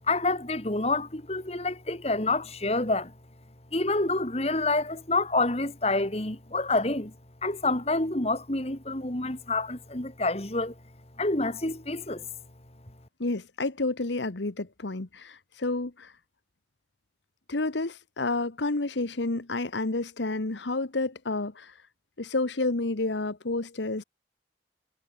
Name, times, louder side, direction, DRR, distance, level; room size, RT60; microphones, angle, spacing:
voice 1, 0.1-3.1 3.7-7.1 7.4-10.7 11.2-12.3, left 2 dB, 35° left, 2.4 m, -28 dB
voice 2, 13.2-16.1 17.5-21.7 22.2-24.0, left 2 dB, 85° left, 1.3 m, -30 dB
head